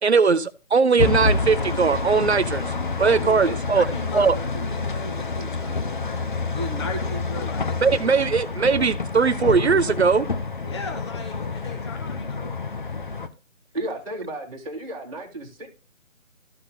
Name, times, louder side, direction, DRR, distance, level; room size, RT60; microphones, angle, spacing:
voice 1, 0.0-2.6 3.0-3.9 4.1-4.3 7.8-10.3, right 5 dB, 55° right, 0.7 m, -20 dB
sound 1, 1.0-13.3, left 3 dB, 40° left, 0.7 m, -28 dB
voice 2, 2.9-8.3 10.6-12.5, left 2 dB, 20° left, 1.2 m, -37 dB
voice 3, 13.7-15.7, right 1 dB, 5° left, 0.8 m, -33 dB
14.0 x 5.5 x 2.7 m
figure-of-eight pair, 160°, 40 cm